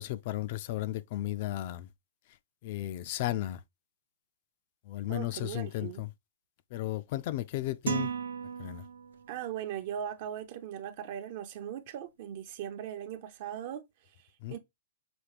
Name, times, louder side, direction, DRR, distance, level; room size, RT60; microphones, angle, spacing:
voice 1, 0.0-1.9 2.6-3.6 4.9-6.1 6.7-8.1 8.6-8.8 14.4-14.6, left 14 dB, 45° left, 0.3 m, -34 dB
voice 2, 5.1-6.0 9.3-14.6, right 10 dB, 50° right, 0.6 m, -39 dB
sound 1, 7.9-9.4, right 7 dB, 85° right, 0.8 m, -35 dB
5.9 x 2.3 x 3.4 m
hypercardioid pair, 135°, 0 cm